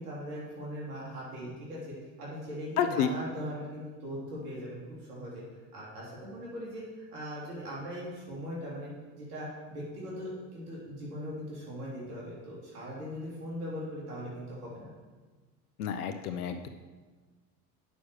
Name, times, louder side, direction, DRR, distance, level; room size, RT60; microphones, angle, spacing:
voice 1, 0.0-5.4 5.7-14.9, equal, 75° right, -6 dB, 3.5 m, -40 dB
voice 2, 2.8-3.1 15.8-16.7, left 8 dB, 75° left, 7 dB, 0.8 m, -30 dB
9.3 x 6.2 x 6.4 m, 1.4 s
hypercardioid pair, 80°, 45 cm